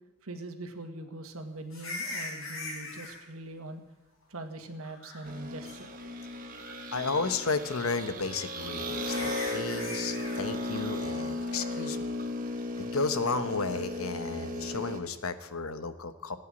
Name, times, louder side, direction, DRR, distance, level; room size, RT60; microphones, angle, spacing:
voice 1, 0.2-3.8 4.3-6.0, right 2 dB, 90° right, 6 dB, 1.8 m, -42 dB
sound 1, 1.7-3.2 4.8-5.4 5.7-5.8 6.4-6.9 8.3-8.4 9.0-10.4 14.5-14.7, left 2 dB, 70° left, 6.4 m, -40 dB
sound 2, 5.2-15.0, left 1 dB, 40° right, 1.8 m, -36 dB
voice 2, 6.9-12.1 12.8-16.4, left 4 dB, 85° left, 10 dB, 1.2 m, -33 dB
15.5 x 9.4 x 9.0 m, 1.0 s
head